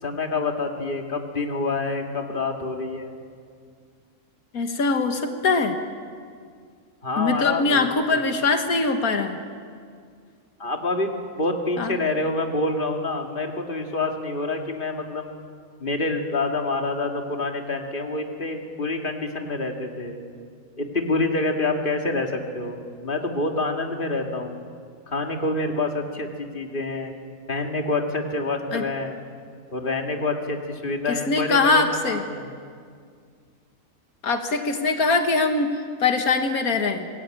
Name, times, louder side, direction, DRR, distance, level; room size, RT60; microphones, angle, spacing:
voice 1, 0.0-3.1 7.0-7.9 8.1-8.2 10.6-15.4 15.8-20.2 20.8-24.6 25.1-27.1 27.5-29.2 29.7-32.5, left 2 dB, 35° left, 3 dB, 2.4 m, -27 dB
voice 2, 4.5-5.8 7.2-9.4 11.8-11.9 28.7-28.8 31.3-32.2 34.2-37.1, left 3 dB, 90° left, 6 dB, 2.0 m, -22 dB
25.5 x 20.5 x 9.1 m, 2.1 s
omnidirectional pair, 1.5 m